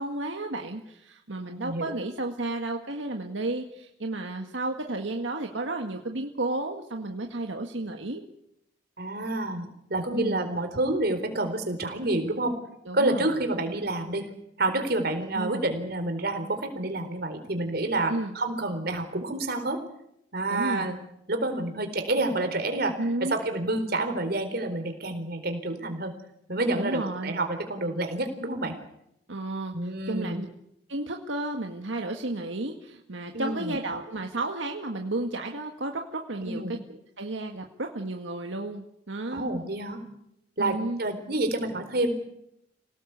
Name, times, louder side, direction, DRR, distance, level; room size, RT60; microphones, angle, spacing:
voice 1, 0.0-8.2 10.1-10.5 12.9-13.4 15.3-15.6 18.1-18.3 20.5-20.9 23.0-23.4 26.7-27.4 29.3-30.5 30.9-39.4 40.6-41.0, right 2 dB, 85° right, 3 dB, 1.9 m, -32 dB
voice 2, 1.5-2.0 9.0-12.5 12.9-14.3 14.6-19.8 20.3-21.0 21.3-26.1 26.5-28.7 29.7-30.4 33.3-33.7 36.4-36.8 39.3-40.0 40.6-42.1, right 2 dB, 55° right, 6 dB, 4.2 m, -28 dB
27.0 x 18.0 x 8.2 m, 0.79 s
head